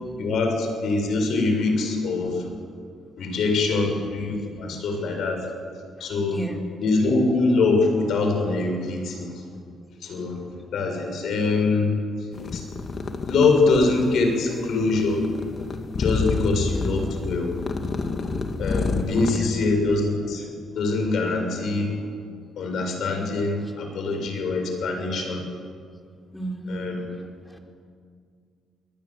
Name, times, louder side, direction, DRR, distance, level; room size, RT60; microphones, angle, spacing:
voice 1, 0.2-2.4 3.2-5.4 6.0-6.4 6.8-9.4 10.0-10.4 10.7-11.9 12.5-12.6 13.3-15.2 16.0-17.6 18.6-20.5 20.7-21.9 22.6-25.4 26.7-27.1, left 3 dB, 70° left, 3 dB, 7.1 m, -23 dB
voice 2, 6.0-6.6 15.7-15.8 19.2-19.5 26.3-27.6, right 2 dB, 10° left, 2 dB, 4.4 m, -34 dB
sound 1, 12.3-19.4, left 4 dB, 45° left, 2.2 m, -29 dB
26.5 x 20.5 x 7.7 m, 2.1 s
cardioid pair, 90°, 0 cm